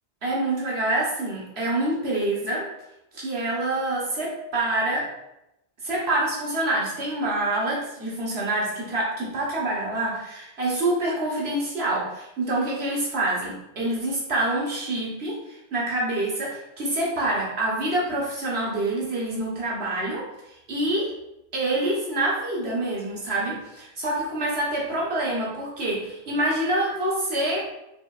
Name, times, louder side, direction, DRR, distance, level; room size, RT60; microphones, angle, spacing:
voice 1, 0.2-2.6 3.1-5.1 5.8-21.1 21.5-27.6, right 1 dB, 80° right, -5 dB, 1.5 m, -26 dB
5.0 x 3.4 x 2.4 m, 0.86 s
omnidirectional pair, 1.0 m